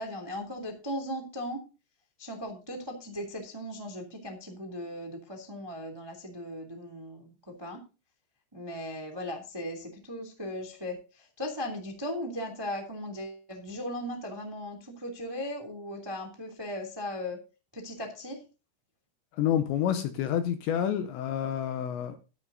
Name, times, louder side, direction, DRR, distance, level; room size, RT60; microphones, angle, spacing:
voice 1, 0.0-1.6 2.2-7.8 8.5-17.4 17.7-18.4, left 1 dB, 20° right, 0.6 m, -37 dB
voice 2, 19.4-22.2, left 10 dB, 75° left, 2.8 m, -28 dB
13.5 x 12.5 x 2.7 m
omnidirectional pair, 5.9 m